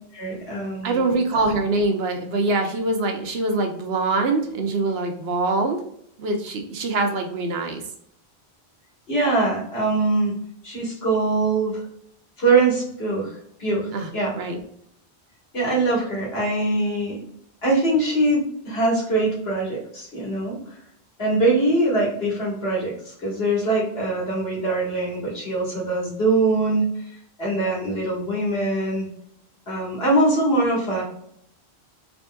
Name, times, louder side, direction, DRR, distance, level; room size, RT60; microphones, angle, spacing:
voice 1, 0.1-1.1 9.1-10.3 10.6-11.8 12.4-14.3 15.5-17.2 17.6-20.6 21.2-26.9 27.4-29.1 29.7-31.0, right 2 dB, 70° left, -4 dB, 2.0 m, -22 dB
voice 2, 0.8-5.8 6.2-7.8 13.9-14.1 14.3-14.6, right 2 dB, 70° right, 4 dB, 1.0 m, -24 dB
4.0 x 3.4 x 2.3 m, 0.70 s
omnidirectional pair, 1.1 m